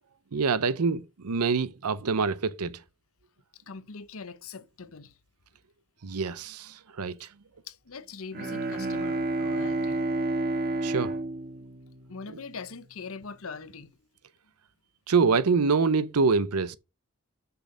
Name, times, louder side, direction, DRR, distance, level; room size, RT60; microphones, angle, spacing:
voice 1, 0.3-2.8 6.0-7.3 10.8-11.1 15.1-16.8, right 4 dB, 90° right, 0.7 m, -25 dB
voice 2, 3.5-5.2 7.6-10.0 12.1-14.0, left 5 dB, 65° left, 0.9 m, -42 dB
Bowed string instrument, 8.3-12.6, right 2 dB, 45° right, 1.5 m, -30 dB
6.8 x 6.3 x 5.1 m
head